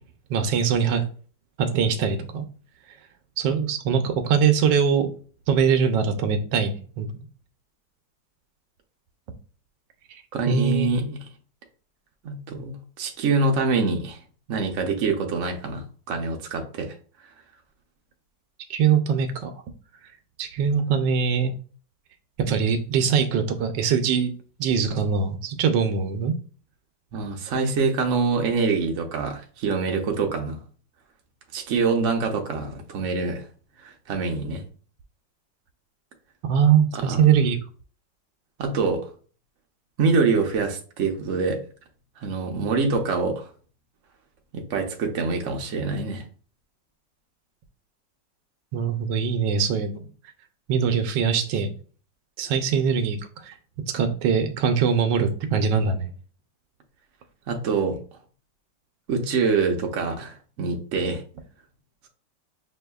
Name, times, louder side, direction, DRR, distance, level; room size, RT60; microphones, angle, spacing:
voice 1, 0.3-1.1 1.6-2.4 3.4-5.1 5.5-7.1 10.1-10.2 10.5-10.9 18.7-19.5 20.4-21.5 22.4-24.3 24.6-26.4 36.4-37.6 48.7-50.0 50.7-51.7 52.4-53.5 53.9-56.1, right 6 dB, 85° right, 1.3 m, -22 dB
voice 2, 10.3-11.2 12.2-14.2 14.5-17.0 27.1-30.6 31.5-33.4 33.8-34.6 36.9-37.2 38.6-39.0 40.0-41.6 42.2-43.5 44.5-46.2 57.5-58.0 59.1-61.2, right 4 dB, 60° right, 0.9 m, -25 dB
6.2 x 2.7 x 2.3 m
omnidirectional pair, 2.0 m